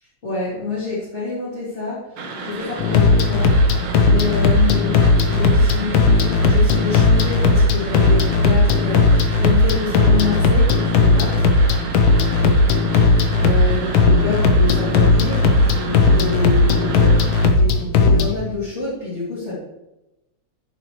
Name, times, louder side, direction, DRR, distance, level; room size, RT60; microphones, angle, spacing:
voice 1, 0.2-3.6 4.0-11.4 12.3-19.6, left 4 dB, 25° left, -9 dB, 2.3 m, -27 dB
sound 1, 2.2-17.5, right 3 dB, 60° right, 1.2 m, -31 dB
sound 2, 2.8-18.3, left 3 dB, 85° left, 1.1 m, -16 dB
9.4 x 7.0 x 3.1 m, 0.95 s
omnidirectional pair, 3.3 m